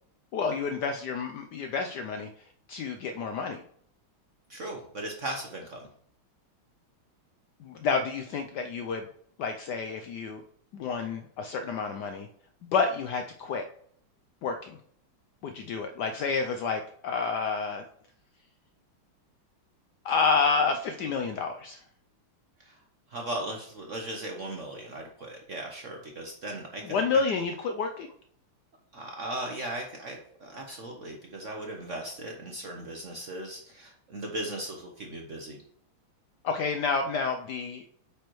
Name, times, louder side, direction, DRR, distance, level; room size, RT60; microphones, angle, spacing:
voice 1, 0.3-2.3 2.7-3.6 7.6-9.1 9.4-10.4 10.7-12.3 12.6-13.7 14.4-14.8 15.4-17.8 20.0-21.8 26.8-28.1 36.4-37.8, left 5 dB, 75° left, 5 dB, 1.0 m, -29 dB
voice 2, 4.5-5.8 22.7-22.8 23.1-27.0 27.3-27.4 28.9-35.6, right 1 dB, 55° right, 2 dB, 0.9 m, -37 dB
8.8 x 5.1 x 3.1 m, 0.64 s
omnidirectional pair, 2.3 m